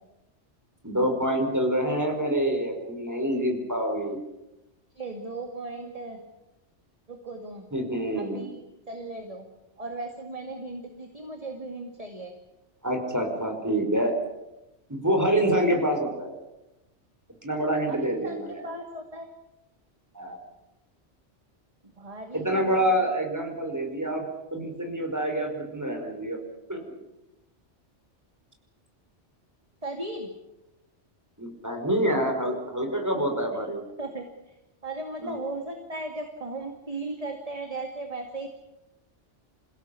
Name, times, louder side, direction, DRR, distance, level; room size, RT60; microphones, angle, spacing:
voice 1, 0.8-4.2 7.7-8.5 12.8-14.1 14.9-16.3 17.4-18.7 20.1-20.4 22.3-24.2 24.5-26.4 26.7-26.8 31.4-33.8 35.2-35.4, right 1 dB, 15° right, 3 dB, 5.1 m, -26 dB
voice 2, 5.0-6.2 7.1-7.6 8.2-8.6 8.9-9.5 9.8-12.3 17.9-19.3 22.0-23.1 29.8-30.3 33.1-33.2 34.0-34.2 34.8-38.5, right 2 dB, 30° right, 4 dB, 2.4 m, -36 dB
28.5 x 16.5 x 8.5 m, 0.94 s
omnidirectional pair, 1.2 m